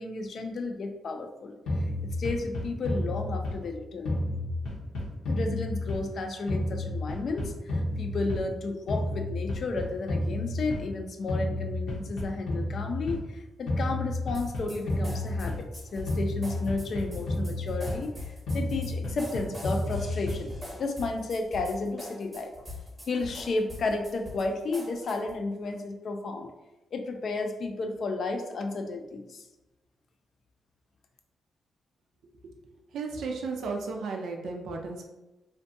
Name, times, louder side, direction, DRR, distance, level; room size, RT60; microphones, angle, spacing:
voice 1, 0.0-1.6 2.0-4.2 5.3-15.6 15.9-18.1 18.5-20.5 20.8-22.5 23.1-26.5 26.9-29.4, left 3 dB, 60° left, 5 dB, 0.3 m, -32 dB
sound 1, 1.7-3.7 4.0-6.2 6.5-8.6 8.9-11.0 11.3-13.3 13.7-15.8 16.1-18.2 18.5-20.6, left 1 dB, 90° left, 0.7 m, -31 dB
sound 2, 14.3-25.4, left 2 dB, 15° right, 0.7 m, -42 dB
voice 2, 32.9-35.0, right 4 dB, 85° right, 2 dB, 0.4 m, -34 dB
2.6 x 2.2 x 2.6 m, 1.0 s
cardioid pair, 95°, 0 cm